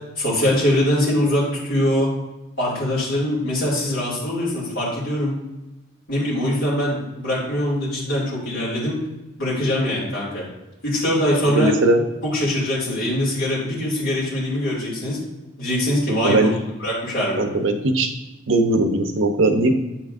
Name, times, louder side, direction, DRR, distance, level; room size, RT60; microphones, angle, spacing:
voice 1, 0.2-2.1 2.6-5.3 6.1-9.0 9.4-10.5 10.8-11.7 12.2-15.2 15.6-16.5 16.8-17.4, left 1 dB, 70° left, -8 dB, 2.5 m, -22 dB
voice 2, 11.5-12.0 16.1-16.5 17.4-18.1 18.5-19.7, right 2 dB, 80° right, 6 dB, 0.8 m, -19 dB
8.2 x 6.1 x 2.5 m, 1.0 s
head